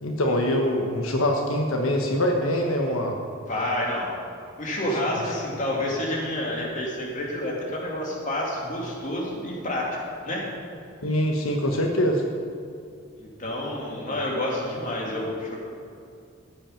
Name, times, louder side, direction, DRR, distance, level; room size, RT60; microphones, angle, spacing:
voice 1, 0.0-3.2 5.2-5.3 11.0-12.2, left 1 dB, 85° left, 2 dB, 1.2 m, -24 dB
voice 2, 3.5-4.1 4.6-10.0 10.2-10.4 13.2-15.6, left 1 dB, 40° left, -3 dB, 2.7 m, -29 dB
14.0 x 8.7 x 5.8 m, 2.4 s
head